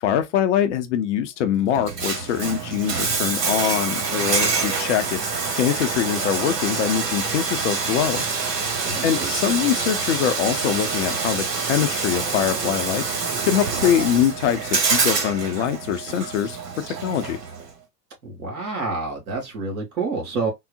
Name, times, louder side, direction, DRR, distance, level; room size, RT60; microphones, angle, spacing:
voice 1, 0.0-5.2 5.5-8.3 9.0-13.0 13.4-16.6 16.9-17.4, left 9 dB, 50° left, 0.6 m, -23 dB
Bathtub (filling or washing), 1.7-17.7, right 4 dB, 75° right, 0.9 m, -26 dB
voice 2, 8.8-9.7 18.2-20.5, right 3 dB, 60° right, 2.3 m, -29 dB
3.7 x 2.0 x 2.5 m
figure-of-eight pair, 90°, 48 cm